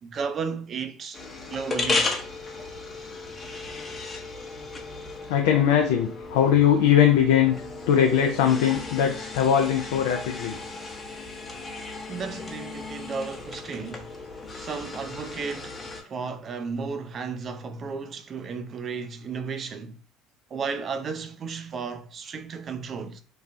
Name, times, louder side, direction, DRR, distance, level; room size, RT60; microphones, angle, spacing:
voice 1, 0.0-2.2 12.1-14.1 14.6-20.0 20.5-23.2, right 5 dB, 45° right, 0.4 m, -34 dB
sound 1, 1.1-16.0, left 3 dB, 30° left, 0.7 m, -35 dB
voice 2, 5.3-7.5 7.9-10.5, left 9 dB, 75° left, 0.3 m, -20 dB
3.1 x 2.1 x 2.6 m
hypercardioid pair, 65°, 0 cm